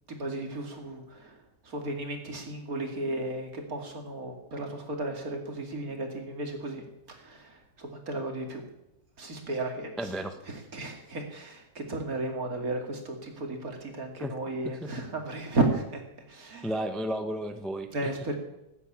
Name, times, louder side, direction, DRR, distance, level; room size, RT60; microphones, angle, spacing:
voice 1, 0.1-8.7 9.2-10.1 10.5-16.0 16.3-16.7 17.9-18.4, right 2 dB, 55° right, 3 dB, 2.9 m, -34 dB
voice 2, 10.0-10.4 14.2-14.3 14.8-14.9 16.6-18.1, right 1 dB, ahead, 8 dB, 0.6 m, -33 dB
14.5 x 9.4 x 8.6 m, 0.88 s
omnidirectional pair, 1.8 m